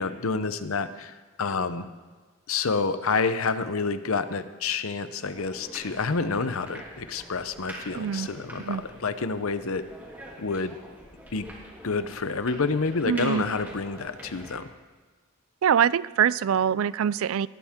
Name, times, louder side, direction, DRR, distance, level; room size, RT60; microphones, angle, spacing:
voice 1, 0.0-1.9 2.5-9.8 10.4-10.8 11.3-11.5 11.8-14.7, left 4 dB, 75° left, 12 dB, 0.8 m, -28 dB
sound 1, 5.2-14.6, equal, 10° right, 3.0 m, -45 dB
voice 2, 7.9-8.3 8.6-8.8 13.0-13.5 15.6-17.5, right 8 dB, 75° right, 20 dB, 0.4 m, -24 dB
19.0 x 13.0 x 3.7 m, 1.4 s
head